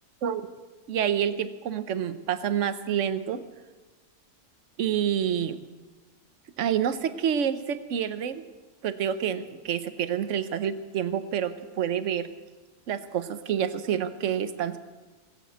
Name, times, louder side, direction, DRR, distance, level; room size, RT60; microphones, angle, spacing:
voice 1, 0.9-3.4 4.8-5.6 6.6-8.4 8.8-12.3 12.9-14.8, right 9 dB, 55° right, 11 dB, 1.1 m, -28 dB
19.5 x 8.5 x 8.0 m, 1.3 s
omnidirectional pair, 1.6 m